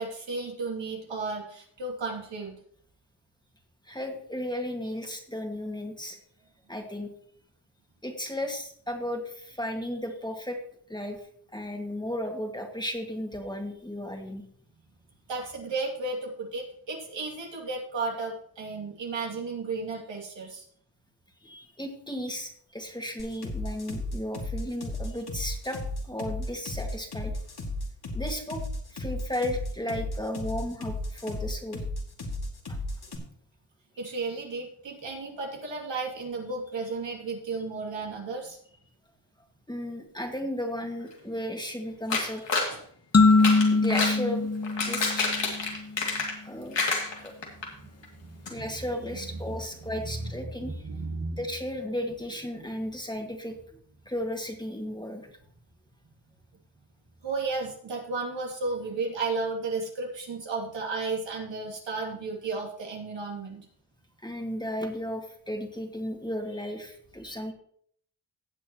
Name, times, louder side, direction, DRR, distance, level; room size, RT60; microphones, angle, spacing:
voice 1, 0.0-2.6 15.3-20.6 34.0-38.6 47.8-47.9 48.3-48.7 49.1-49.7 50.2-50.3 50.6-51.4 57.2-63.7, right 3 dB, 85° right, -1 dB, 2.7 m, -33 dB
voice 2, 3.9-6.2 6.7-7.1 8.0-10.6 10.9-11.2 11.5-14.4 21.4-25.8 26.0-27.3 28.1-28.6 28.9-31.8 32.7-32.8 39.7-42.5 43.7-44.5 44.8-45.3 46.5-46.8 47.2-47.3 48.5-50.7 51.4-53.6 54.1-55.3 64.2-67.5, left 1 dB, 10° left, 3 dB, 2.0 m, -34 dB
sound 1, 23.2-33.2, left 2 dB, 55° left, 2.5 m, -34 dB
sound 2, 42.1-42.7 43.3-44.2 44.6-46.5 46.7-47.7 48.0-48.1 48.5-48.6, left 3 dB, 75° left, 2.6 m, -28 dB
sound 3, 43.1-45.8, left 3 dB, 35° left, 1.2 m, -22 dB
17.0 x 7.3 x 3.0 m, 0.62 s
cardioid pair, 65°, 44 cm